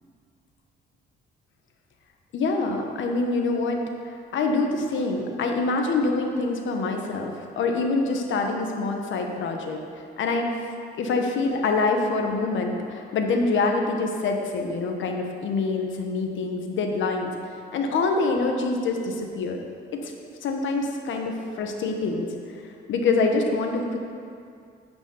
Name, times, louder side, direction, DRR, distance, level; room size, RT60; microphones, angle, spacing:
voice 1, 2.3-3.8 4.0-10.5 11.0-17.3 17.7-19.6 19.9-20.1 20.4-24.0, left 3 dB, 75° left, 3 dB, 1.2 m, -25 dB
9.3 x 5.3 x 7.0 m, 2.4 s
cardioid pair, 90°, 20 cm